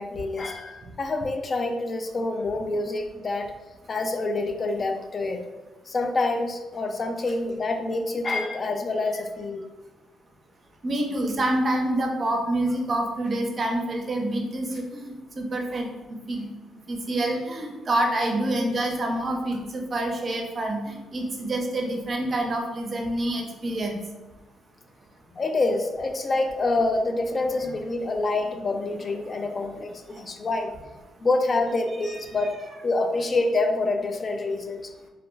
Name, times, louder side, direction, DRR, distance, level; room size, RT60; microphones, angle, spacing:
voice 1, 0.0-3.5 3.9-5.4 5.9-9.7 25.3-30.7 31.2-32.6 32.8-34.9, left 2 dB, 40° left, 5 dB, 0.3 m, -27 dB
voice 2, 10.8-14.7 14.9-16.5 16.9-24.0 32.3-32.4, right 1 dB, 40° right, 2 dB, 0.5 m, -27 dB
2.3 x 2.1 x 3.1 m, 1.1 s
cardioid pair, 90°, 0 cm